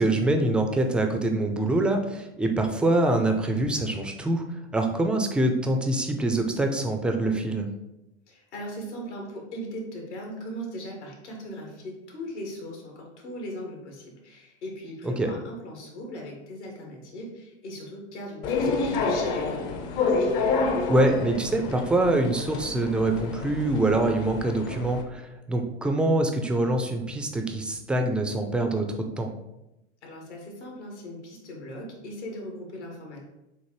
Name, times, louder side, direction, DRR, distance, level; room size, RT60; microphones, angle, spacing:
voice 1, 0.0-4.4 4.7-7.7 15.0-15.3 20.9-28.9 29.2-29.3, right 2 dB, 5° right, 4 dB, 0.4 m, -24 dB
voice 2, 8.3-19.6 30.0-33.2, equal, 80° left, 0 dB, 1.7 m, -39 dB
sound 1, 18.4-25.0, left 4 dB, 45° left, 0.8 m, -28 dB
6.6 x 2.5 x 3.1 m, 0.92 s
hypercardioid pair, 100°, 34 cm